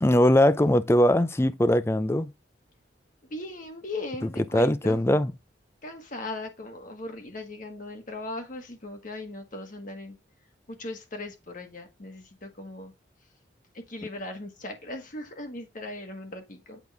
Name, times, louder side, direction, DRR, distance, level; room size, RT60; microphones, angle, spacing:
voice 1, 0.0-2.3 4.4-5.3, left 1 dB, 15° left, 0.5 m, -21 dB
voice 2, 3.3-5.0 5.8-10.2 10.7-12.9 13.7-16.8, left 2 dB, 45° left, 1.6 m, -38 dB
8.1 x 5.5 x 3.5 m
head